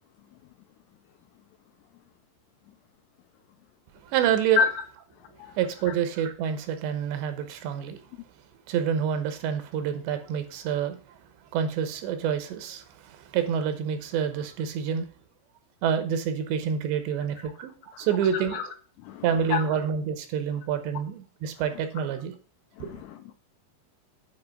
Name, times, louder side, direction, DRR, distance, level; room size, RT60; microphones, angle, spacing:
voice 1, 4.0-4.6 5.6-8.0 8.7-11.2 11.5-15.1 15.8-18.6 19.2-22.3 22.8-22.9, right 8 dB, 80° right, 3.2 m, -28 dB
voice 2, 18.3-18.7 19.0-19.6 22.8-23.3, left 6 dB, 80° left, 2.5 m, -29 dB
8.6 x 5.0 x 6.5 m
omnidirectional pair, 5.1 m